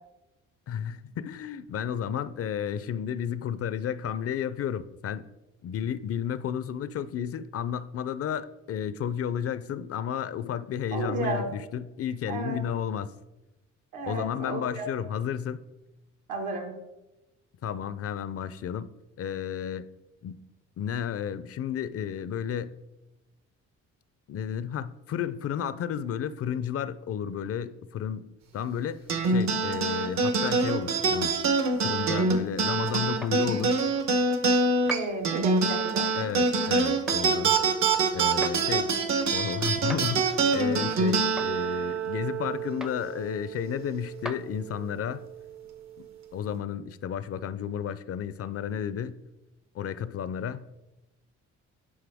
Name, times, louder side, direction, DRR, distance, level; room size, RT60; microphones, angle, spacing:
voice 1, 0.7-5.3 5.6-13.1 14.0-15.6 17.6-19.9 20.2-20.4 20.8-22.7 24.3-31.4 31.8-33.8 36.2-37.5 38.1-38.9 39.3-45.2 46.0-46.1 46.3-49.2 49.7-50.6, left 8 dB, 50° left, 0.5 m, -32 dB
voice 2, 10.9-11.5 12.3-12.6 13.9-14.9 16.3-16.7 34.9-36.1, right 2 dB, 85° right, 1.8 m, -32 dB
sound 1, 29.1-43.8, right 4 dB, 65° right, 1.0 m, -25 dB
sound 2, 33.2-33.4 34.9-35.1 37.1-37.2 38.4-38.6 39.9-40.1 41.4-41.5 42.8-43.0 44.2-44.4, equal, ahead, 0.4 m, -37 dB
9.8 x 5.4 x 3.5 m
cardioid pair, 90°, 30 cm